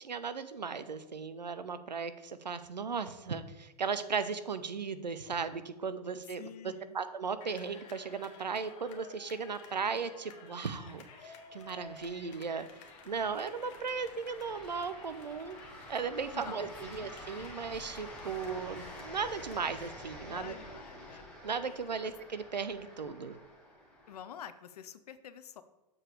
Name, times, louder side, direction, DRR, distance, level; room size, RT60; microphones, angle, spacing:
voice 1, 0.0-12.7 13.1-15.6 15.9-20.6 21.4-23.4, right 5 dB, 85° right, 12 dB, 0.6 m, -36 dB
voice 2, 6.4-7.0 16.3-17.1 20.2-21.3 24.1-25.6, left 9 dB, 65° left, 13 dB, 0.6 m, -48 dB
sound 1, 7.4-19.9, left 5 dB, 50° left, 1.3 m, -54 dB
sound 2, 9.4-24.2, left 1 dB, 5° left, 1.8 m, -50 dB
7.3 x 4.7 x 4.9 m, 1.0 s
figure-of-eight pair, 100°, 21 cm